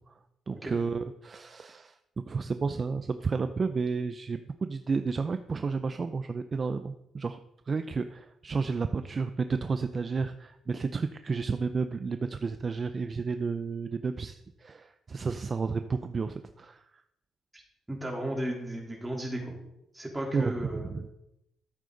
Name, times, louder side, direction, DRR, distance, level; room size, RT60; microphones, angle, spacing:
voice 1, 0.5-1.9 2.3-7.4 7.7-16.8 20.3-21.1, right 4 dB, 35° right, 9 dB, 0.5 m, -31 dB
voice 2, 17.9-19.5 19.9-21.0, right 1 dB, 10° right, -2 dB, 3.6 m, -34 dB
13.0 x 8.2 x 3.9 m, 0.85 s
cardioid pair, 90°, 0 cm